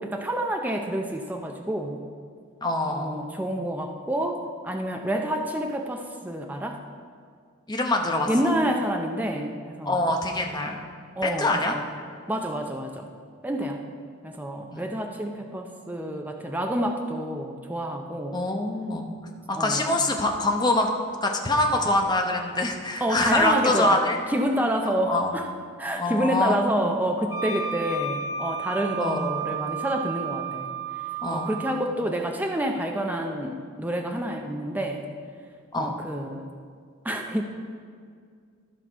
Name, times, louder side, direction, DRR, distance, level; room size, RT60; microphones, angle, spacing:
voice 1, 0.0-2.0 2.9-6.8 8.3-10.0 11.2-11.8 12.3-13.1 13.4-13.8 14.2-18.4 19.5-20.0 23.0-24.0 24.3-25.5 25.8-30.7 31.3-35.0 35.8-36.5 37.0-37.4, right 1 dB, 10° right, 2 dB, 0.5 m, -28 dB
voice 2, 2.6-3.2 7.7-8.3 9.8-10.8 11.2-11.8 13.6-13.7 14.7-14.8 18.3-19.1 19.5-20.9 21.2-24.2 25.1-25.4 26.0-26.9 29.0-29.2 31.2-31.5 35.7-35.9, left 2 dB, 20° left, 2 dB, 0.8 m, -24 dB
Wind instrument woodwind instrument, 27.3-31.8, right 5 dB, 75° left, 1.7 m, -32 dB
13.5 x 5.8 x 4.6 m, 2.1 s
head